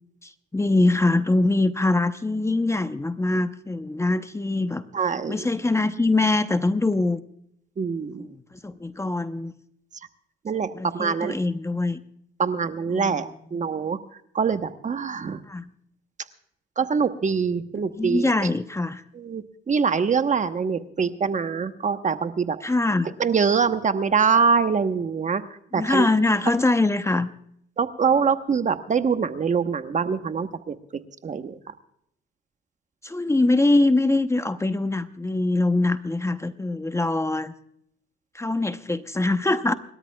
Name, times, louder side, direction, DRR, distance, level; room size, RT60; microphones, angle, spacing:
voice 1, 0.2-4.8 5.3-7.2 8.6-9.5 10.8-12.0 12.9-13.1 15.5-15.7 17.8-19.0 22.6-23.1 25.7-27.3 33.0-37.5 38.3-39.7, left 2 dB, 15° left, 10 dB, 0.8 m, -23 dB
voice 2, 4.9-5.5 7.8-8.3 10.4-11.4 12.4-14.0 14.3-15.4 16.8-18.5 19.1-22.6 23.2-25.4 25.7-26.1 27.8-30.7 31.2-31.6, right 6 dB, 40° right, 10 dB, 1.1 m, -24 dB
29.0 x 13.0 x 2.3 m, 0.71 s
cardioid pair, 90°, 20 cm